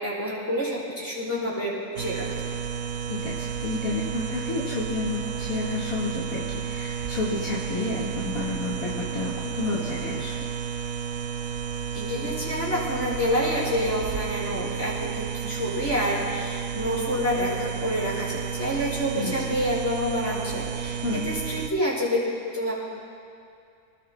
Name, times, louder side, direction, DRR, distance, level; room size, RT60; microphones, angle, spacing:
voice 1, 0.0-2.5 11.9-21.0 21.3-22.2 22.5-22.7, equal, 50° left, -7 dB, 5.2 m, -28 dB
sound 1, 2.0-21.7, right 7 dB, 70° right, 1.1 m, -32 dB
voice 2, 3.1-10.5 19.1-19.6 21.0-21.3, left 3 dB, 65° left, -6 dB, 2.4 m, -31 dB
29.5 x 19.5 x 2.3 m, 2.5 s
omnidirectional pair, 1.6 m